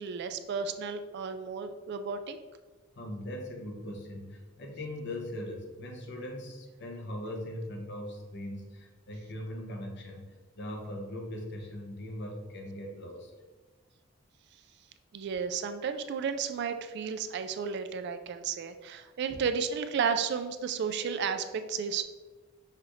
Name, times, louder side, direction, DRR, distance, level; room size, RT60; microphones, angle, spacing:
voice 1, 0.0-2.4 15.1-22.0, right 6 dB, 55° right, 9 dB, 0.3 m, -33 dB
voice 2, 3.0-13.3 19.3-19.4, left 1 dB, 60° left, 1 dB, 0.8 m, -40 dB
5.7 x 2.5 x 3.0 m, 1.3 s
head